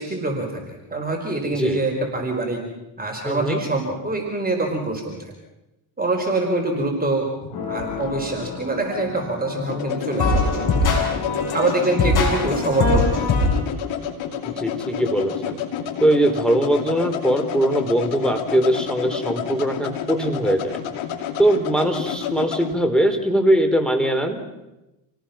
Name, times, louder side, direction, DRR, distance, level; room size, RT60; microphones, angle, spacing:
voice 1, 0.0-2.6 3.0-5.3 6.0-7.3 7.7-10.9 11.5-13.3, right 2 dB, 20° right, 1 dB, 4.6 m, -25 dB
voice 2, 3.3-3.6 14.4-15.6 16.0-20.8 21.4-24.4, right 1 dB, ahead, 6 dB, 3.8 m, -21 dB
sound 1, 7.4-22.8, left 8 dB, 75° left, 2.8 m, -30 dB
sound 2, 7.5-9.8 10.2-13.5, left 3 dB, 50° left, 7.8 m, -23 dB
28.5 x 18.5 x 5.9 m, 0.97 s
supercardioid pair, 80°, 47 cm